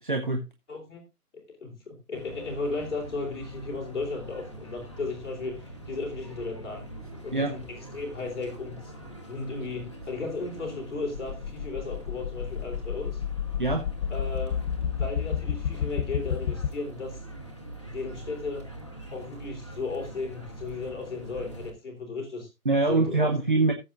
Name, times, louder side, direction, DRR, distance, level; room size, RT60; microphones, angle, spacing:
voice 1, 0.0-0.4 7.3-7.5 13.6-13.8 22.6-23.7, right 3 dB, 35° right, 5 dB, 0.8 m, -24 dB
voice 2, 0.7-1.0 1.3-6.9 7.2-8.9 9.2-13.2 14.1-17.2 17.8-18.7 19.1-22.5 22.8-23.3, left 3 dB, 50° left, -1 dB, 3.4 m, -35 dB
sound 1, 2.1-21.7, right 1 dB, 20° left, 0.9 m, -43 dB
sound 2, 11.1-16.7, left 8 dB, 70° left, 0.5 m, -31 dB
17.5 x 7.7 x 2.5 m, 0.26 s
hypercardioid pair, 180°, 46 cm